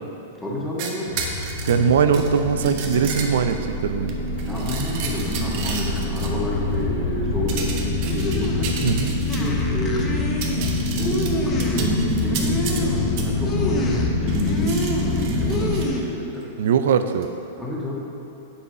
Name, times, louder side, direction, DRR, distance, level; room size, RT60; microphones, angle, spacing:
voice 1, 0.4-1.2 4.4-8.9 9.3-10.2 10.5-10.6 10.9-16.5 17.6-18.0, equal, 5° left, -5 dB, 1.6 m, -29 dB
sound 1, 0.8-3.6 4.1-6.3 7.5-9.6 10.0-10.1 10.3-12.9 13.2-13.3 14.3-15.9 17.1-17.2, right 5 dB, 50° right, 1.0 m, -33 dB
sound 2, 1.0-15.9, left 2 dB, 70° left, 1.3 m, -26 dB
voice 2, 1.7-4.2 8.8-9.2 16.6-17.3, right 7 dB, 65° right, 9 dB, 0.5 m, -21 dB
sound 3, 8.0-16.0, left 2 dB, 30° left, 1.0 m, -29 dB
7.9 x 5.8 x 5.1 m, 2.7 s
hypercardioid pair, 105°, 0 cm